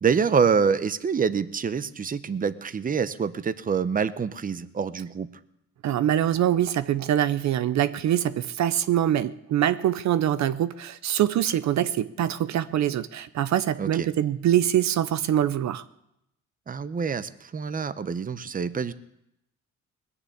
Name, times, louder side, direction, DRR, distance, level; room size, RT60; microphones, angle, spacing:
voice 1, 0.0-5.3 13.8-14.1 16.7-18.9, right 6 dB, 30° right, 0.8 m, -26 dB
voice 2, 5.8-15.8, right 11 dB, 65° right, 0.7 m, -24 dB
20.5 x 6.9 x 8.5 m
cardioid pair, 90°, 30 cm